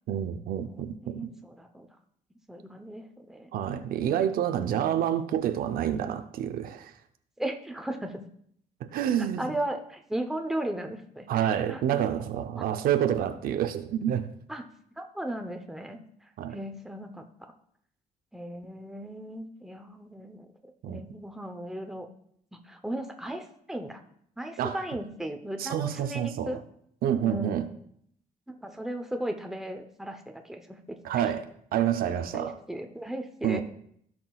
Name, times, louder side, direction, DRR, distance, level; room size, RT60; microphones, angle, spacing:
voice 1, 0.1-1.3 3.5-6.9 8.9-9.6 11.3-14.3 16.4-16.6 20.8-21.0 24.6-24.8 25.6-26.6 27.0-27.7 31.0-31.4 31.7-32.6 33.4-33.6, right 10 dB, 85° right, 0.7 m, -28 dB
voice 2, 0.6-1.9 2.5-3.8 4.6-5.1 7.4-8.2 9.4-12.0 12.6-12.7 14.5-14.6 15.0-16.0 16.5-17.2 18.3-20.5 20.9-22.1 22.5-24.0 24.4-26.6 27.3-27.6 28.5-31.2 32.3-33.6, right 1 dB, 5° right, 0.8 m, -36 dB
16.0 x 6.1 x 2.4 m
cardioid pair, 125°, 15 cm